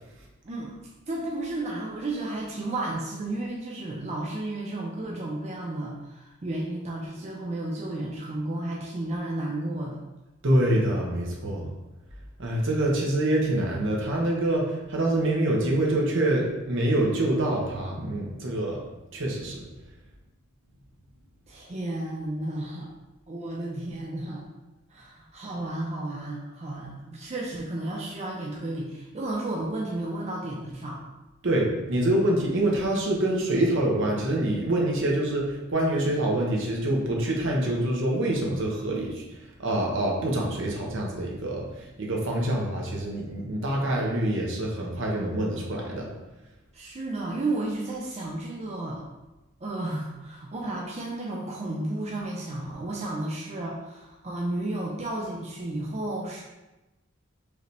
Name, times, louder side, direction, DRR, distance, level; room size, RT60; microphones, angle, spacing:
voice 1, 1.1-10.0 12.6-12.7 21.5-22.9 23.3-24.5 24.9-31.0 46.7-49.0 49.6-56.4, right 2 dB, 35° right, -3 dB, 0.5 m, -32 dB
voice 2, 10.4-11.7 12.4-18.8 19.1-19.6 31.4-39.2 39.6-41.7 42.0-46.1, right 1 dB, 65° right, -1 dB, 1.0 m, -25 dB
4.8 x 2.8 x 3.3 m, 1.0 s
head